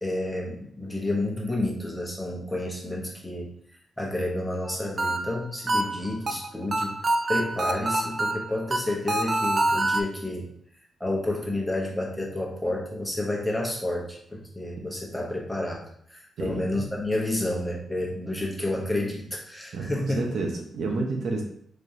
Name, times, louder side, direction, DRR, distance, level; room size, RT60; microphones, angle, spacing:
voice 1, 0.0-3.5 4.0-7.0 7.3-10.5 11.0-20.2, left 1 dB, 5° left, -2 dB, 1.1 m, -30 dB
sound 1, 4.6-10.0, right 2 dB, 40° right, 0.4 m, -26 dB
voice 2, 16.4-16.9 19.7-21.4, right 3 dB, 75° right, 1 dB, 0.9 m, -30 dB
4.3 x 3.1 x 2.8 m, 0.65 s
cardioid pair, 95°, 0 cm